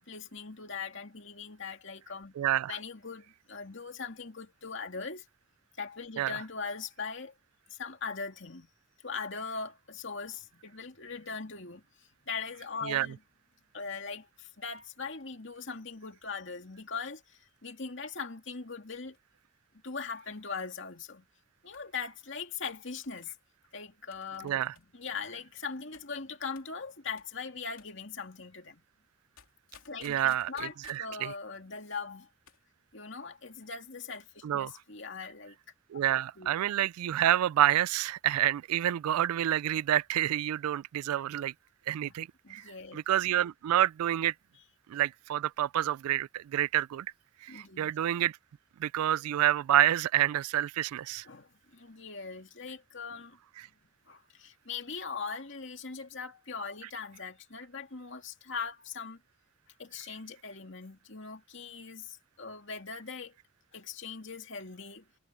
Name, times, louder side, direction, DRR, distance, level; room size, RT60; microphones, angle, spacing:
voice 1, 0.0-2.3 2.7-5.3 5.8-7.3 7.7-8.7 9.0-13.2 13.7-19.2 19.8-21.2 21.6-23.3 23.7-28.8 29.9-32.3 32.9-35.6 36.4-36.5 42.4-43.0 47.5-47.9 51.3-53.4 53.6-53.7 54.1-59.2 59.8-63.3 63.7-65.0, left 5 dB, 55° left, 2.5 m, -40 dB
voice 2, 2.4-2.8 6.2-6.3 12.8-13.1 24.4-24.7 30.0-30.5 30.9-31.3 34.4-34.7 35.9-41.5 41.9-42.6 42.9-44.3 44.9-47.1 47.4-48.3 48.8-51.2, right 12 dB, 90° right, 0.3 m, -28 dB
sound 1, 14.7-18.1 18.9-19.4 19.6-19.7 20.2-20.6 21.7-21.9 22.7-23.3 24.1-24.9 25.9-26.1 26.6-26.8 27.2-27.4 27.8-28.0 29.4-31.1 32.3-32.7 32.9-33.0, left 7 dB, 75° left, 3.0 m, -60 dB
head